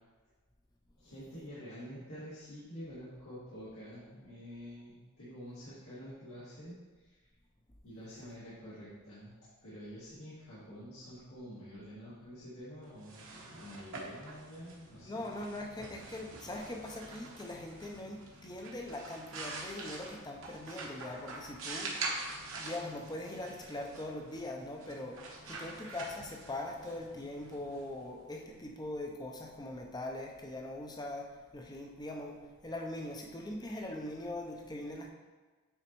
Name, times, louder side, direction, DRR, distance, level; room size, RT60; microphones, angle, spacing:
voice 1, 1.0-6.7 7.0-7.2 7.8-9.3 9.6-15.4, equal, 75° left, -12 dB, 2.1 m, -48 dB
sound 1, 12.9-28.5, right 3 dB, 60° right, 1.0 m, -45 dB
voice 2, 15.0-22.0 22.6-35.1, left 1 dB, 20° left, 1 dB, 0.6 m, -41 dB
9.1 x 4.0 x 3.1 m, 1.3 s
head